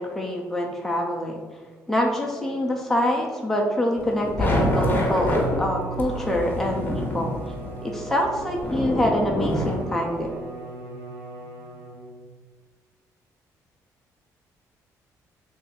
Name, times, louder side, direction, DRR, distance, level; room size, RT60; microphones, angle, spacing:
voice 1, 0.0-1.4 1.9-7.4 7.8-10.4, left 1 dB, 5° left, 0 dB, 0.5 m, -25 dB
sound 1, 4.0-10.3, left 1 dB, 30° left, 0.8 m, -27 dB
Bowed string instrument, 4.0-12.3, right 2 dB, 80° right, 1.2 m, -38 dB
3.2 x 2.6 x 3.8 m, 1.4 s
cardioid pair, 95°, 7 cm